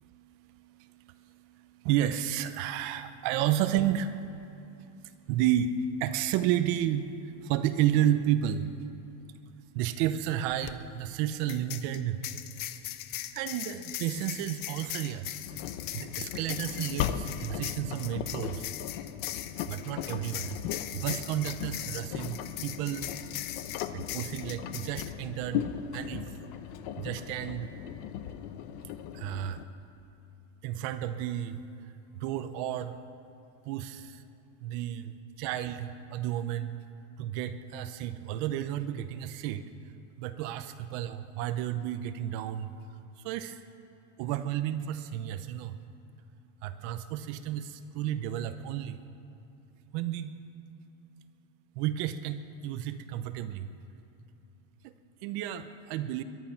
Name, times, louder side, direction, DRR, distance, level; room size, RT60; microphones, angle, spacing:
voice 1, 0.0-8.7 9.7-12.2 13.1-15.7 15.9-18.7 19.7-20.6 20.9-23.1 23.9-25.7 25.9-26.3 27.0-27.7 29.1-29.6 30.6-31.7 32.1-33.0 33.7-34.2 34.6-36.8 37.2-39.6 40.2-42.7 43.2-43.6 44.2-45.8 46.6-49.0 49.9-50.3 51.8-53.7 54.8-54.9 55.2-56.2, right 11 dB, 40° right, 11 dB, 0.7 m, -32 dB
sound 1, 10.5-10.7 11.5-25.1, left 13 dB, 30° left, 0.4 m, -40 dB
Engine, 15.5-29.6, left 9 dB, 50° left, 0.8 m, -38 dB
22.5 x 11.0 x 5.8 m, 2.8 s
supercardioid pair, 160°, 37 cm